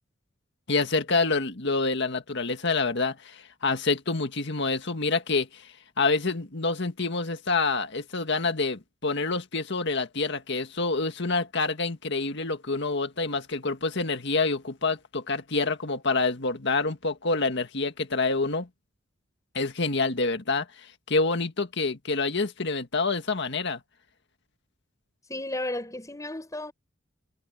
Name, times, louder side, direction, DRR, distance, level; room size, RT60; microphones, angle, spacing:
voice 1, 0.7-5.7 6.0-18.7 19.5-20.7 21.1-23.8, left 3 dB, 65° left, 1.9 m, -27 dB
voice 2, 25.3-26.7, left 1 dB, 15° left, 6.0 m, -33 dB
head